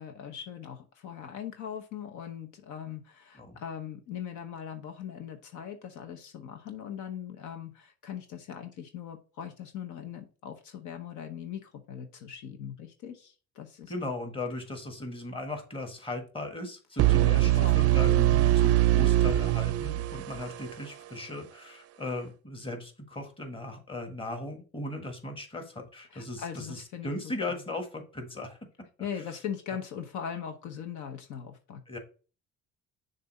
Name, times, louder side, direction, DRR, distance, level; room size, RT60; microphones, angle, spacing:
voice 1, 0.0-13.9 17.4-18.6 26.1-27.1 27.5-27.6 29.0-31.8, left 8 dB, 70° left, 6 dB, 1.0 m, -40 dB
voice 2, 13.9-28.6 31.9-32.0, left 2 dB, 15° left, 4 dB, 1.5 m, -37 dB
sound 1, 17.0-20.9, right 15 dB, 50° right, 0.5 m, -23 dB
6.6 x 2.7 x 5.3 m, 0.36 s
cardioid pair, 95°, 30 cm